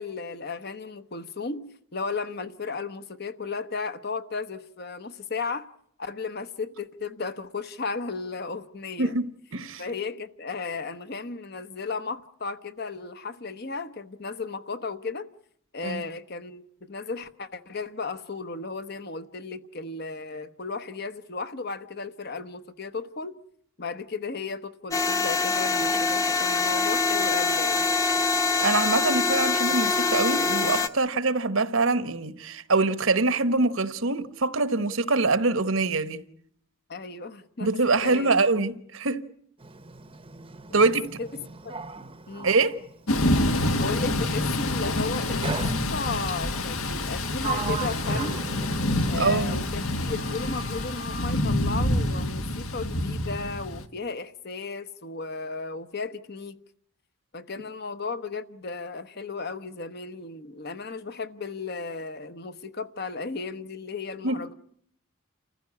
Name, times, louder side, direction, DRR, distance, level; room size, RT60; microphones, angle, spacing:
voice 1, 0.0-5.7 6.0-9.2 9.8-15.3 15.7-23.4 23.8-27.9 36.9-37.7 38.0-38.3 40.7-41.8 42.3-42.5 43.8-48.4 49.1-56.6 57.3-64.5, left 4 dB, 45° left, 1.0 m, -35 dB
voice 2, 9.0-9.8 15.8-16.0 28.6-36.2 37.6-39.2 40.7-41.0 42.4-42.7 49.2-49.6 64.2-64.4, right 3 dB, 65° right, 1.1 m, -24 dB
sound 1, 24.9-30.9, left 4 dB, 15° left, 1.0 m, -24 dB
Sliding door, 39.6-43.6 45.4-46.3 47.0-49.8 50.1-51.4, right 4 dB, 25° right, 0.9 m, -38 dB
Thunder / Rain, 43.1-53.8, left 1 dB, 75° left, 1.7 m, -27 dB
29.0 x 15.0 x 9.7 m
head